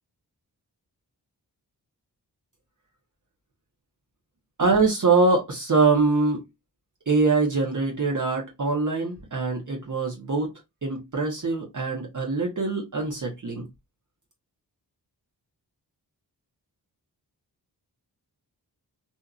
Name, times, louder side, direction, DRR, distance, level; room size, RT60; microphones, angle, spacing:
voice 1, 4.6-6.4 7.1-13.7, right 3 dB, 45° right, 1.1 m, -23 dB
2.8 x 2.4 x 2.4 m
cardioid pair, 55°, 41 cm